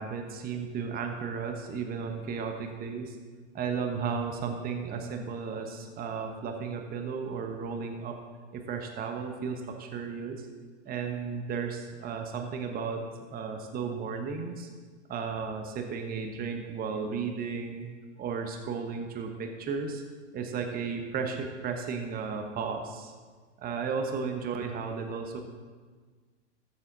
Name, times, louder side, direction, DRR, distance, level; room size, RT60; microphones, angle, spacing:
voice 1, 0.0-3.2 3.5-8.2 8.5-10.5 10.8-13.0 13.3-14.7 15.1-17.9 18.2-20.0 20.3-23.1 23.6-25.4, right 5 dB, 25° right, 4 dB, 1.1 m, -34 dB
13.5 x 7.6 x 4.0 m, 1.5 s
hypercardioid pair, 110°, 36 cm